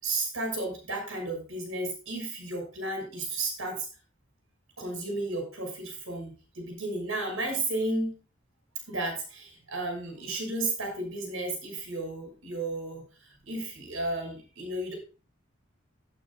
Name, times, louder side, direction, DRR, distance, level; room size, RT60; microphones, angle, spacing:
voice 1, 0.0-3.9 4.8-8.1 8.9-14.9, right 2 dB, 85° right, 3 dB, 6.0 m, -33 dB
16.5 x 9.4 x 2.4 m, 0.35 s
head